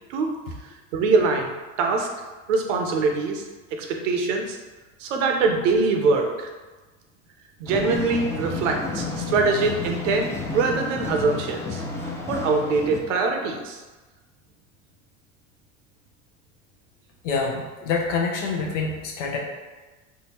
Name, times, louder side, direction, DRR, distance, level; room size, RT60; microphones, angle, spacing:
voice 1, 0.9-1.5 1.8-2.1 2.5-3.4 3.7-4.6 5.0-6.5 7.6-11.8 12.3-13.8, right 4 dB, 75° right, 3 dB, 0.6 m, -23 dB
sound 1, 7.7-13.0, left 3 dB, 5° left, 0.4 m, -31 dB
voice 2, 17.2-19.4, left 4 dB, 80° left, 0 dB, 0.7 m, -26 dB
3.7 x 2.1 x 2.9 m, 1.2 s
hypercardioid pair, 80°, 37 cm